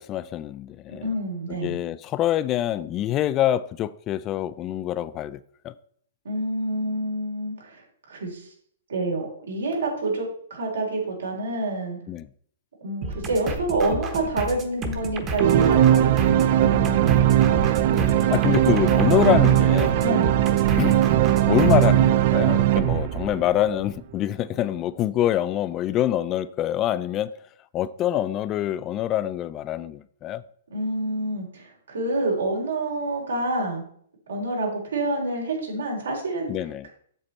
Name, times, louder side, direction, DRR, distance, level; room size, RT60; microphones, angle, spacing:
voice 1, 0.0-1.1 1.6-5.4 5.6-5.7 12.1-12.3 17.9-20.0 20.8-21.0 21.5-27.4 27.7-30.4 36.5-36.9, left 12 dB, 25° left, 0.3 m, -25 dB
voice 2, 0.9-1.8 6.2-7.8 8.1-8.5 8.9-12.0 12.8-16.4 16.7-17.3 20.0-20.4 30.7-33.8 34.3-36.5, right 2 dB, 85° right, 3.6 m, -28 dB
sound 1, 13.0-21.9, right 2 dB, 25° right, 1.0 m, -32 dB
sound 2, 15.4-23.8, right 12 dB, 45° right, 0.4 m, -19 dB
7.9 x 7.2 x 4.2 m
hypercardioid pair, 145°, 0 cm